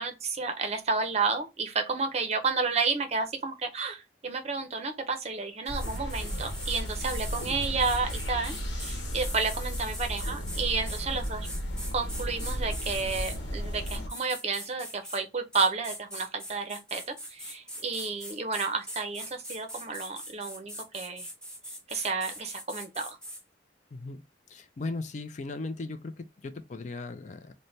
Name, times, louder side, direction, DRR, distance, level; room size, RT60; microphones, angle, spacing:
voice 1, 0.0-11.5 11.9-21.3 21.9-23.2, right 4 dB, 40° right, 0.6 m, -31 dB
sound 1, 5.7-14.1, equal, 85° left, 0.9 m, -34 dB
sound 2, 5.7-13.4 13.9-15.2 15.5-23.4, equal, 5° left, 1.0 m, -42 dB
voice 2, 23.9-24.2 24.5-27.5, left 3 dB, 45° left, 0.4 m, -37 dB
3.2 x 2.1 x 4.0 m
head